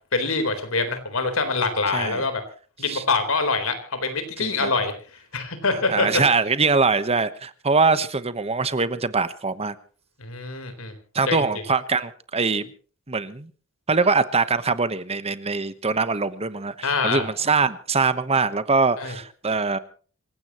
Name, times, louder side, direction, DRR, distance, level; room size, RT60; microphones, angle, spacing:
voice 1, 0.1-2.4 2.8-4.9 5.3-6.2 10.2-10.9 11.2-11.4 16.8-17.3 19.0-19.2, left 3 dB, 80° left, 9 dB, 4.0 m, -25 dB
voice 2, 1.9-2.2 2.9-3.0 4.4-4.7 5.9-9.7 11.1-12.7 13.1-13.5 13.9-19.8, right 4 dB, 30° right, 13 dB, 1.1 m, -23 dB
26.5 x 16.0 x 3.1 m, 0.41 s
head